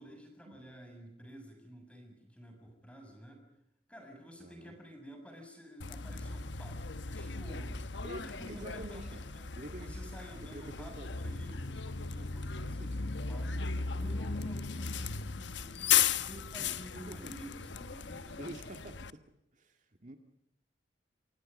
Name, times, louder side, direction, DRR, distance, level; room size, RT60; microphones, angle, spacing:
voice 1, 0.0-3.4 3.9-9.4 9.8-18.5, equal, 5° left, 4 dB, 7.1 m, -51 dB
voice 2, 4.4-4.8 8.0-9.1 9.6-10.0 10.4-11.1 12.8-13.0 13.8-14.1 17.1-17.3 18.1-19.2 19.5-20.2, right 1 dB, 40° right, 5 dB, 2.0 m, -48 dB
Bus, 5.8-19.1, left 6 dB, 70° left, 1.0 m, -36 dB
28.5 x 24.5 x 5.4 m, 0.78 s
head